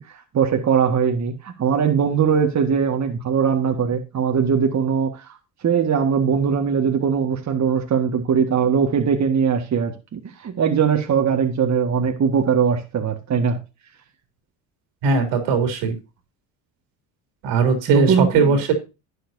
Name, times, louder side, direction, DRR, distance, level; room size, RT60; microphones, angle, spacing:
voice 1, 0.1-13.6 17.9-18.6, right 7 dB, 40° right, 1.8 m, -21 dB
voice 2, 15.0-15.9 17.4-18.7, right 4 dB, 80° right, 3.4 m, -19 dB
12.0 x 9.0 x 2.7 m
supercardioid pair, 90°, 42 cm